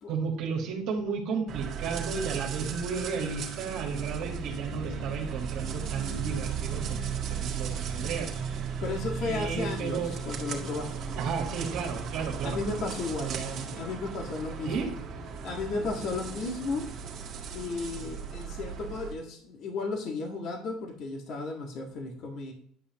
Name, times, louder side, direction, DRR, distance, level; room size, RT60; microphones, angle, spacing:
voice 1, 0.1-7.1 7.4-8.3 9.2-10.2 11.2-12.6 13.2-13.8 14.7-14.9, right 5 dB, 65° right, 1 dB, 1.6 m, -33 dB
sound 1, 1.5-19.1, right 6 dB, 50° right, 1.7 m, -36 dB
voice 2, 8.8-10.9 12.4-13.4 13.8-14.9 15.4-16.8 17.5-22.5, left 3 dB, 60° left, 2 dB, 1.7 m, -34 dB
9.9 x 5.6 x 2.9 m, 0.63 s
supercardioid pair, 95°, 0 cm